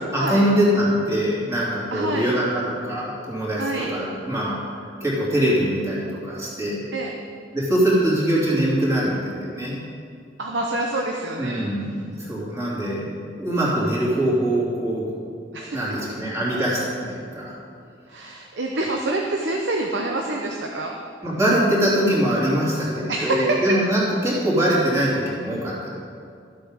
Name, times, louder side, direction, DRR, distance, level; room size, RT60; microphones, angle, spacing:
voice 1, 0.1-4.6 5.0-6.8 7.5-9.8 11.4-15.1 15.7-17.5 21.2-25.9, right 1 dB, 15° right, -6 dB, 2.9 m, -23 dB
voice 2, 1.9-2.3 3.6-3.9 4.3-4.4 6.9-7.1 10.4-11.7 15.5-15.9 18.1-20.9 23.1-23.6, right 2 dB, 80° right, 1 dB, 0.9 m, -26 dB
13.0 x 7.8 x 5.1 m, 2.3 s
head